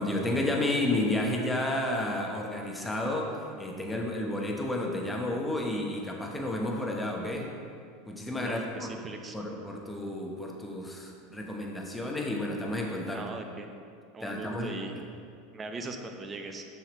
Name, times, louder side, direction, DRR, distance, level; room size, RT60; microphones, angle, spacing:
voice 1, 0.0-7.5 8.1-8.9 9.3-13.3 14.2-15.0, left 1 dB, 10° left, 0 dB, 1.1 m, -31 dB
voice 2, 8.4-9.4 13.1-13.8 14.1-14.9 15.5-16.6, right 3 dB, 25° right, 4 dB, 0.7 m, -39 dB
7.0 x 5.8 x 3.1 m, 2.4 s
hypercardioid pair, 85°, 0 cm